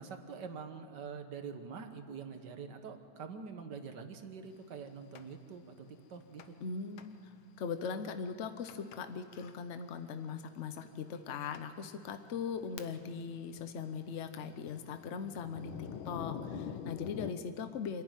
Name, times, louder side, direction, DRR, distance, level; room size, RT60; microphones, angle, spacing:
voice 1, 0.0-6.4, right 5 dB, 60° right, 7 dB, 1.8 m, -45 dB
Thunder, 5.2-5.3 6.4-6.7 7.0-7.1 7.7-7.8 8.7-9.0 9.3-9.6 10.5-10.6 11.2-11.3 11.5-11.7 12.3-13.2 13.5-17.3, left 8 dB, 90° left, 1.7 m, -45 dB
voice 2, 6.6-18.0, left 6 dB, 60° left, 9 dB, 0.7 m, -40 dB
26.5 x 11.0 x 9.1 m, 2.2 s
omnidirectional pair, 2.2 m